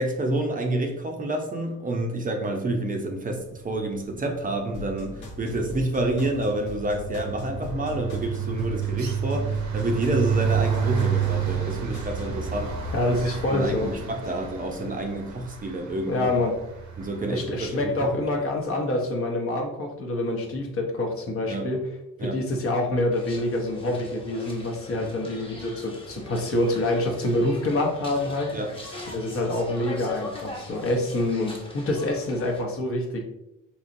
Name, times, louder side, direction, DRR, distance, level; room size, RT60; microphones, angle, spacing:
voice 1, 0.0-12.9 13.2-16.3 17.0-18.2 21.5-21.7 22.2-22.4 25.0-25.1 28.5-28.8, right 1 dB, 30° right, 2 dB, 0.5 m, -28 dB
sound 1, 4.3-4.7 5.0-18.1, right 8 dB, 75° right, 0.7 m, -30 dB
sound 2, 4.7-12.4, left 2 dB, 75° left, 1.0 m, -39 dB
voice 2, 12.9-13.9 16.1-16.5 17.3-21.8 22.2-28.5 29.1-33.2, left 1 dB, 45° left, 2 dB, 0.8 m, -26 dB
sound 3, 23.1-32.6, left 2 dB, 20° left, 0.9 m, -41 dB
3.8 x 2.9 x 2.6 m, 0.91 s
cardioid pair, 90°, 30 cm